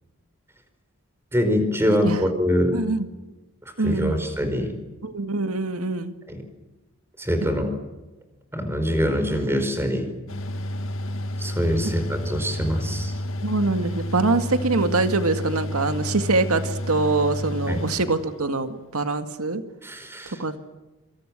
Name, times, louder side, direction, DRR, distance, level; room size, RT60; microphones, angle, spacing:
voice 1, 1.3-2.8 3.8-4.7 6.3-6.4 7.2-7.7 8.5-10.1 11.4-13.1 17.7-17.8 19.8-20.4, equal, 10° right, 7 dB, 4.9 m, -24 dB
voice 2, 2.7-3.1 3.8-4.2 5.0-6.1 13.4-19.6 20.4-20.6, right 3 dB, 90° right, 8 dB, 2.0 m, -24 dB
Mechanical fan, 10.3-18.7, left 1 dB, 65° left, 2.0 m, -30 dB
26.5 x 26.0 x 7.6 m, 1.1 s
head